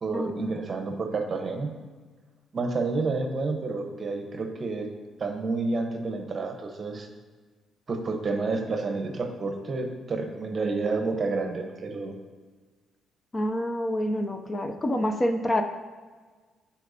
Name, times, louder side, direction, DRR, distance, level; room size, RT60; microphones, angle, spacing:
voice 1, 0.0-1.7 2.5-4.9 5.2-7.1 7.9-12.2, right 3 dB, 40° right, 5 dB, 0.9 m, -29 dB
voice 2, 13.3-15.6, left 1 dB, 25° left, 6 dB, 0.5 m, -27 dB
10.5 x 4.3 x 2.7 m, 1.4 s
cardioid pair, 90°, 0 cm